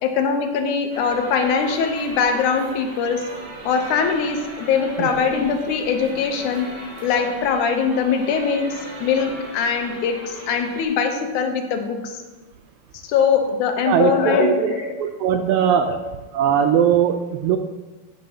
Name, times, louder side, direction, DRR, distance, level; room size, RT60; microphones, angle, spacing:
voice 1, 0.0-3.3 3.7-6.7 7.0-12.2 13.1-15.0 15.7-16.0 16.8-17.0, left 6 dB, 75° left, 5 dB, 2.2 m, -22 dB
sound 1, 0.9-10.8, right 1 dB, 50° right, 3.0 m, -38 dB
voice 2, 13.8-14.7 15.0-15.9 16.3-17.6, right 9 dB, 80° right, 7 dB, 1.7 m, -19 dB
13.5 x 7.5 x 2.8 m, 1.2 s
omnidirectional pair, 3.7 m